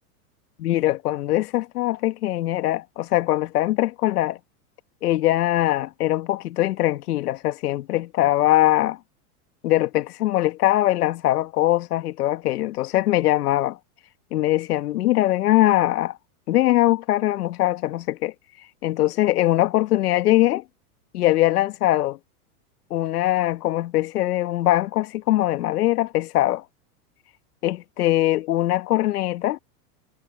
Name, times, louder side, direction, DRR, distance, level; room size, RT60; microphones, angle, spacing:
voice 1, 0.6-4.4 5.0-9.0 9.6-13.8 14.3-16.2 16.5-18.3 18.8-20.6 21.1-22.2 22.9-26.6 27.6-29.6, left 15 dB, 85° left, 1.5 m, -21 dB
supercardioid pair, 135°, 46 cm